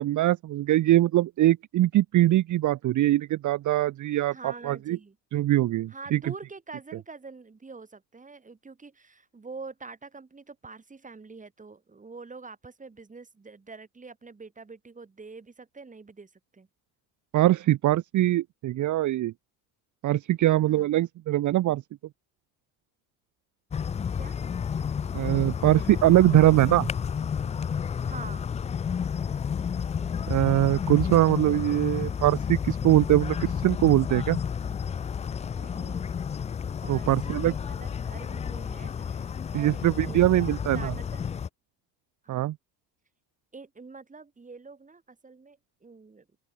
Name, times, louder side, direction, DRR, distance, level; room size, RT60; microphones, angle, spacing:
voice 1, 0.0-5.0 5.3-6.3 17.3-19.3 20.0-21.8 25.1-26.9 30.3-34.4 36.9-37.5 39.5-40.9 42.3-42.6, right 14 dB, 50° right, 0.7 m, -22 dB
voice 2, 4.3-5.2 5.9-16.7 20.7-20.9 24.2-24.4 28.0-28.5 35.6-36.1 36.8-41.3 42.2-42.5 43.5-46.3, right 4 dB, 20° right, 2.7 m, -45 dB
sound 1, 23.7-41.5, left 7 dB, 20° left, 0.3 m, -31 dB
open air
supercardioid pair, 95°, 39 cm